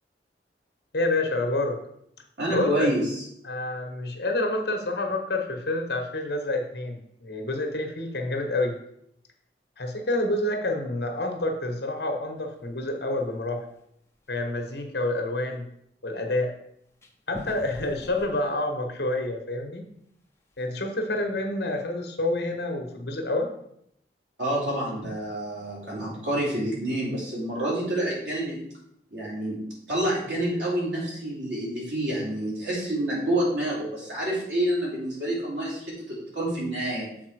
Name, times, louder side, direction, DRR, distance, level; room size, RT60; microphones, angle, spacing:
voice 1, 0.9-1.8 2.5-2.9 3.4-8.8 9.8-13.6 14.3-15.7 16.0-16.5 17.3-19.8 20.6-23.5, left 2 dB, 60° left, 3 dB, 1.2 m, -28 dB
voice 2, 2.4-3.2 24.4-28.6 29.1-29.6 29.9-37.1, right 1 dB, 80° right, -5 dB, 3.1 m, -28 dB
sound 1, 12.6-12.9 13.3-13.7 14.1-14.2 14.6-14.7 17.0-19.4 19.8-19.9 20.3-20.7, equal, 15° left, 0.7 m, -44 dB
7.1 x 4.2 x 4.8 m, 0.74 s
head